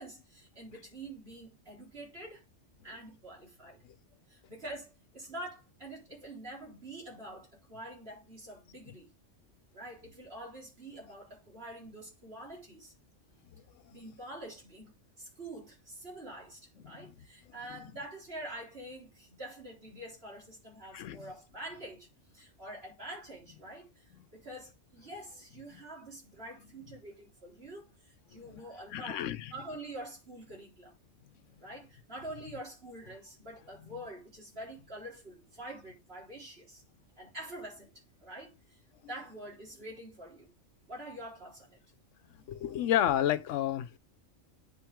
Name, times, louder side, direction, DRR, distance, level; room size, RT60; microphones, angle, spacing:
voice 1, 0.0-2.4 2.8-3.8 4.3-9.1 9.7-12.9 13.9-22.1 22.3-24.0 24.3-31.0 31.6-36.8 37.2-37.9 38.2-38.8 39.1-40.5 40.9-41.8, right 1 dB, 55° right, 4.2 m, -46 dB
voice 2, 28.9-29.5 42.5-44.0, left 11 dB, 85° left, 1.0 m, -30 dB
9.1 x 6.0 x 3.6 m
omnidirectional pair, 1.3 m